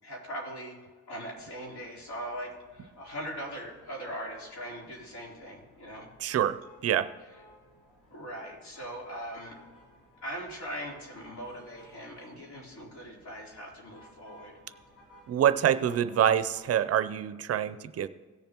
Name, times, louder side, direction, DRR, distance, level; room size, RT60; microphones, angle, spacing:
voice 1, 0.0-0.8 1.1-6.1 8.1-9.6 10.2-14.5 15.6-16.0, equal, 65° left, -3 dB, 3.6 m, -40 dB
sound 1, 1.3-16.7, equal, 90° left, 3.1 m, -58 dB
voice 2, 6.2-7.1 15.3-18.1, right 10 dB, 55° right, 12 dB, 0.5 m, -26 dB
17.5 x 7.0 x 2.9 m, 1.4 s
cardioid pair, 90°, 30 cm